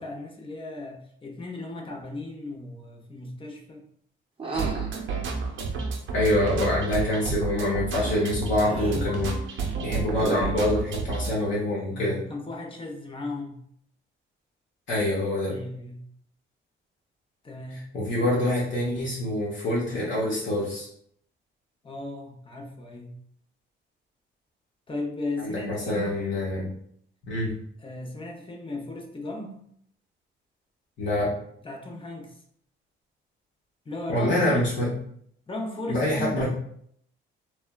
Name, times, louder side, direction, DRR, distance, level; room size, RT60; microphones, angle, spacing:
voice 1, 0.0-3.9 8.5-9.2 11.9-13.6 15.5-16.0 17.4-17.9 21.8-23.2 24.9-26.3 27.8-29.7 31.6-32.4 33.8-34.8 35.5-36.5, left 2 dB, 25° left, 0 dB, 0.6 m, -36 dB
sound 1, 4.4-4.9 6.4-7.0 7.9-8.3 8.6-9.1 10.1-10.7, right 3 dB, 25° right, 0.6 m, -34 dB
sound 2, 4.5-11.3, right 5 dB, 75° right, 0.6 m, -30 dB
voice 2, 6.1-12.2 14.9-15.5 17.9-20.9 25.4-26.7 27.2-27.5 31.0-31.3 34.1-34.9 35.9-36.5, left 1 dB, 70° left, -6 dB, 0.9 m, -26 dB
3.2 x 2.1 x 2.2 m, 0.67 s
cardioid pair, 90°, 20 cm